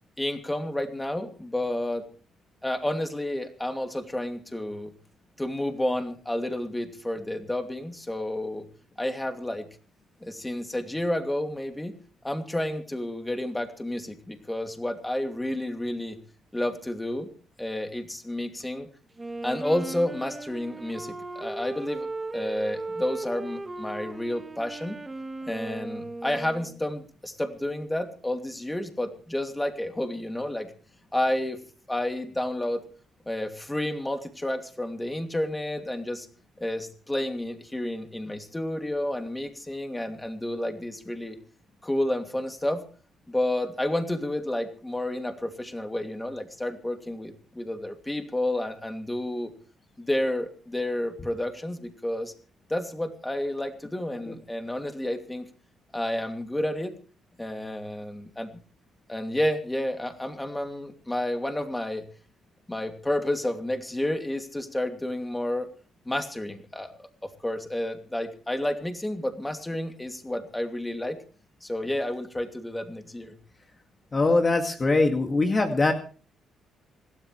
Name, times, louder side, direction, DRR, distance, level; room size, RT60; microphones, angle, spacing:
voice 1, 0.2-2.0 2.6-4.9 5.4-8.7 9.0-9.7 10.2-11.9 12.2-16.2 16.5-17.3 17.6-18.9 19.4-22.1 22.3-25.0 25.5-30.7 31.1-31.6 31.9-32.8 33.3-36.3 36.6-41.4 41.8-42.8 43.3-49.5 50.0-52.3 52.7-55.4 55.9-56.9 57.4-58.5 59.1-62.0 62.7-65.7 66.0-66.9 67.2-71.2 71.6-73.4, left 1 dB, 10° left, 5 dB, 2.7 m, -30 dB
Wind instrument woodwind instrument, 19.2-26.8, right 2 dB, 20° right, 1.7 m, -37 dB
voice 2, 74.1-75.9, left 3 dB, 30° left, 4 dB, 2.2 m, -22 dB
26.5 x 13.0 x 3.3 m, 0.40 s
cardioid pair, 90°, 0 cm